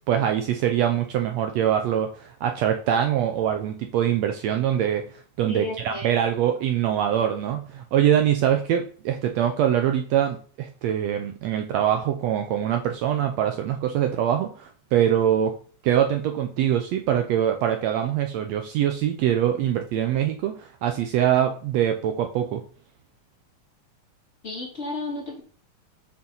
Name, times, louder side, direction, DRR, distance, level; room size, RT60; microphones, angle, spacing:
voice 1, 0.1-15.5 15.8-22.6, right 10 dB, 80° right, 5 dB, 1.5 m, -23 dB
voice 2, 5.5-6.1 24.4-25.4, left 2 dB, 25° left, -3 dB, 1.9 m, -33 dB
6.7 x 3.9 x 5.5 m, 0.42 s
omnidirectional pair, 3.7 m